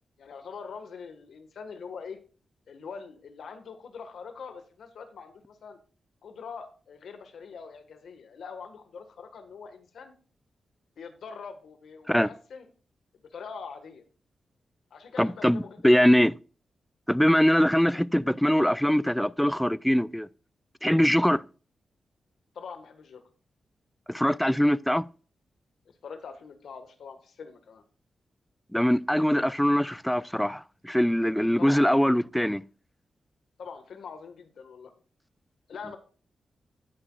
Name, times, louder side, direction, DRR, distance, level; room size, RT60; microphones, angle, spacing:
voice 1, 0.2-2.2 2.7-5.8 6.2-10.1 11.0-12.6 13.2-14.0 14.9-16.1 22.5-23.2 25.9-27.8 31.6-31.9 33.6-34.9 35.7-36.0, left 5 dB, 80° left, 1.5 m, -43 dB
voice 2, 15.2-16.3 17.1-20.3 20.8-21.4 24.1-25.0 28.7-32.6, equal, 5° left, 0.4 m, -22 dB
17.0 x 6.0 x 2.4 m
cardioid pair, 60°, 0 cm